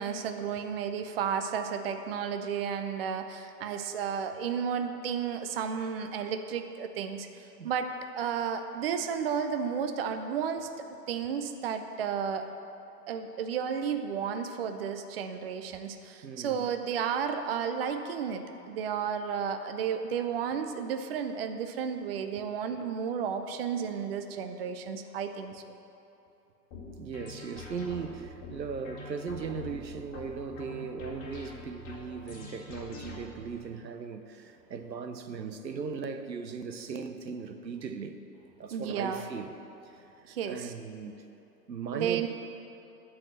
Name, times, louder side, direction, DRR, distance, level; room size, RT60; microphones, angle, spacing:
voice 1, 0.0-12.5 13.1-25.6 38.7-39.2 40.2-40.7 41.9-42.3, right 7 dB, 40° right, 8 dB, 0.5 m, -33 dB
voice 2, 16.2-16.6 26.9-38.2 38.6-39.5 39.8-41.2 41.7-42.3, right 5 dB, 85° right, 8 dB, 0.9 m, -38 dB
sound 1, 26.7-33.6, left 3 dB, 25° left, 2.0 m, -45 dB
10.5 x 4.7 x 7.6 m, 2.9 s
figure-of-eight pair, 125°, 49 cm